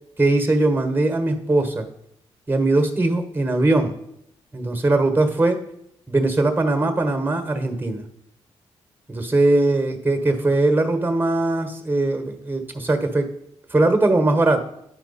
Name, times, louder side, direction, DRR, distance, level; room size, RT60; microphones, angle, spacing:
voice 1, 0.2-1.9 2.5-3.9 4.5-5.6 6.1-8.0 9.1-13.3 13.7-14.6, right 2 dB, 15° right, 6 dB, 1.3 m, -20 dB
9.7 x 4.5 x 4.2 m, 0.77 s
supercardioid pair, 50°, 12 cm